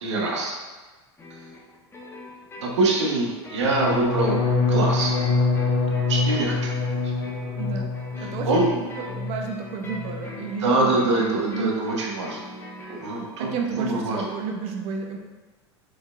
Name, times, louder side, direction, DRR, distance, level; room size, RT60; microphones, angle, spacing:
voice 1, 0.0-0.5 2.6-4.4 4.7-5.1 6.1-6.8 8.4-8.7 10.6-12.5 12.9-14.2, right 2 dB, 85° right, -1 dB, 0.9 m, -24 dB
sound 1, 1.2-13.1, left 2 dB, 15° left, 1.0 m, -42 dB
sound 2, 3.6-9.5 9.8-10.3 10.6-11.0, left 3 dB, 85° left, 0.8 m, -25 dB
voice 2, 7.6-7.9 8.2-11.8 13.4-15.2, right 5 dB, 50° right, 2 dB, 0.6 m, -32 dB
4.7 x 4.3 x 2.3 m, 1.2 s
hypercardioid pair, 105°, 15 cm